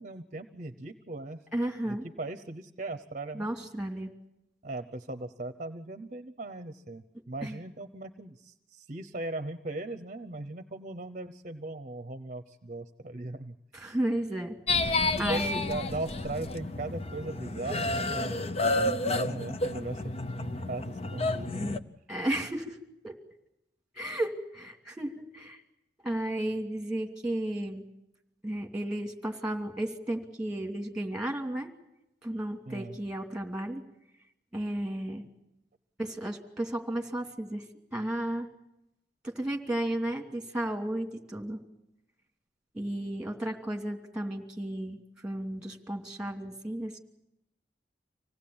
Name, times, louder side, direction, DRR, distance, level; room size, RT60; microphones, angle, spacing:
voice 1, 0.0-1.4 1.9-3.5 4.6-13.6 15.3-18.4 18.7-20.0 20.4-21.7 32.7-33.0, right 2 dB, 45° right, 9 dB, 0.8 m, -38 dB
voice 2, 1.5-2.1 3.3-4.1 7.4-7.6 13.7-15.6 22.1-22.8 23.0-23.1 23.9-25.6 26.0-27.8 28.4-31.7 32.2-33.8 34.5-35.2 36.0-37.6 37.9-38.5 39.2-41.6 42.7-47.0, right 1 dB, 5° right, 4 dB, 2.7 m, -33 dB
sound 1, 14.7-21.8, left 2 dB, 35° left, 0.8 m, -30 dB
26.0 x 17.5 x 8.8 m, 0.87 s
head